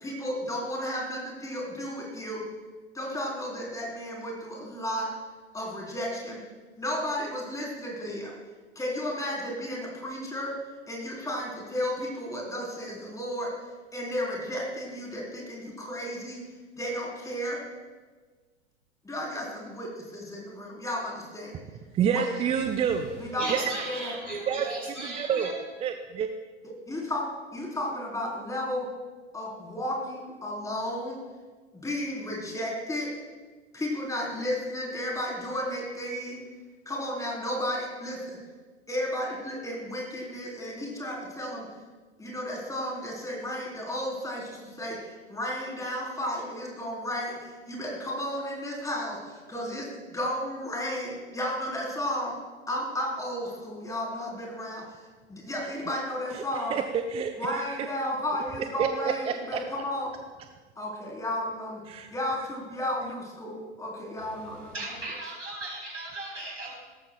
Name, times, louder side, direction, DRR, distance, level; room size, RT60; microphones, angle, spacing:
voice 1, 0.0-2.4 3.0-5.1 5.5-6.4 6.8-8.3 8.8-10.5 10.9-13.5 13.9-16.4 16.8-17.6 19.1-19.9 20.1-21.5 22.1-22.4 23.2-24.2 26.9-27.2 27.5-28.8 29.3-31.2 31.8-33.1 33.7-36.4 36.9-38.4 38.9-41.6 42.2-44.4 44.8-45.0 45.3-47.3 47.7-49.2 49.5-52.3 52.7-54.8 55.3-56.8 57.4-60.1 60.8-61.8 62.1-64.9, left 1 dB, 10° left, -2 dB, 3.8 m, -33 dB
voice 2, 21.9-23.1 23.5-23.7 24.5-24.7 25.0-25.5 25.8-26.3 56.3-56.4 56.7-57.7 58.8-58.9 59.3-59.6 61.9-62.1, right 8 dB, 15° right, 7 dB, 0.5 m, -28 dB
voice 3, 23.4-25.5 64.2-66.7, right 2 dB, 90° right, -2 dB, 4.2 m, -36 dB
17.5 x 13.5 x 2.3 m, 1.4 s
figure-of-eight pair, 95°, 36 cm